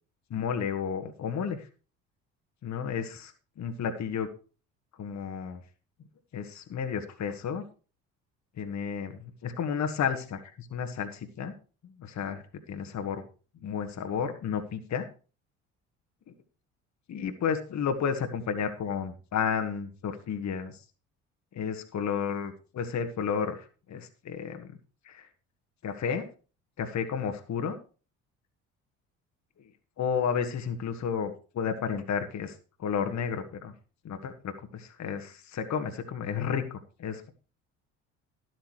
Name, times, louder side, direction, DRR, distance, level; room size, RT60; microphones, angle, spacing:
voice 1, 0.3-1.7 2.6-4.3 5.0-5.6 6.3-7.6 8.6-11.5 12.0-12.4 12.7-13.2 13.6-15.1 17.1-20.8 21.5-24.7 25.0-25.3 25.8-26.3 26.8-27.8 30.0-32.5 32.8-33.7 34.0-37.3, left 7 dB, 45° left, 6 dB, 1.6 m, -32 dB
12.5 x 12.0 x 3.2 m, 0.36 s
figure-of-eight pair, 55°, 40 cm